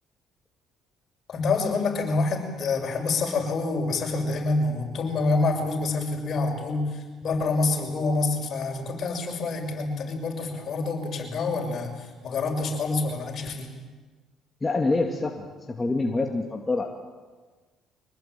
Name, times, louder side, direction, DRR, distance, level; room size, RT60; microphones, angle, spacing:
voice 1, 1.3-13.7, left 3 dB, 55° left, 2 dB, 6.5 m, -27 dB
voice 2, 14.6-17.0, left 3 dB, 20° left, 1 dB, 2.3 m, -26 dB
25.0 x 20.0 x 9.2 m, 1.4 s
cardioid pair, 95°, 0 cm